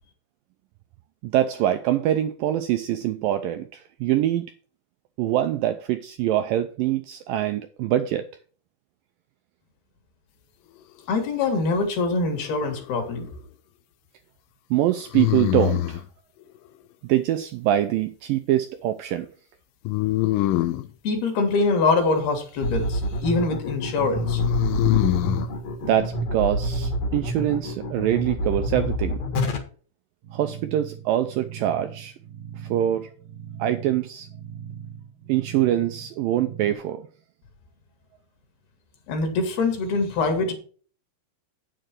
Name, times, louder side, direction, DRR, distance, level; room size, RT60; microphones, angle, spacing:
voice 1, 1.2-4.5 5.2-8.3 14.7-16.0 17.0-19.3 25.8-29.2 30.3-32.1 32.6-33.1 33.6-34.3 35.3-37.1, right 12 dB, 90° right, 2.0 m, -24 dB
voice 2, 11.1-13.3 21.0-24.4 39.1-40.5, left 3 dB, 70° left, 4.1 m, -24 dB
sound 1, 12.4-13.1 15.1-16.1 19.9-20.9 24.2-25.5, left 16 dB, 85° left, 2.0 m, -24 dB
sound 2, 22.6-29.6, equal, 50° left, 2.4 m, -27 dB
sound 3, 30.2-36.8, right 8 dB, 60° right, 2.4 m, -40 dB
8.9 x 7.7 x 4.5 m
omnidirectional pair, 4.6 m